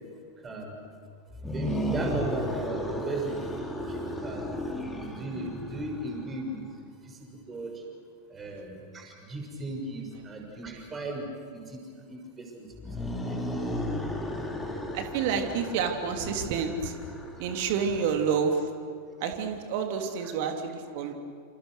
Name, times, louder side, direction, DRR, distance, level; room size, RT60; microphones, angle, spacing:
voice 1, 0.4-0.7 1.5-3.4 3.9-4.0 4.2-4.5 5.0-6.6 7.5-7.7 8.3-11.8 12.1-12.7 13.0-13.6 20.2-20.3, right 2 dB, 20° right, 2 dB, 6.5 m, -36 dB
sound 1, 1.3-6.5 12.7-18.4, equal, 5° left, 3.6 m, -34 dB
voice 2, 14.9-16.9 17.4-18.6 19.2-21.1, right 6 dB, 50° right, 5 dB, 3.0 m, -29 dB
28.5 x 27.5 x 6.5 m, 2.3 s
figure-of-eight pair, 90°, 0 cm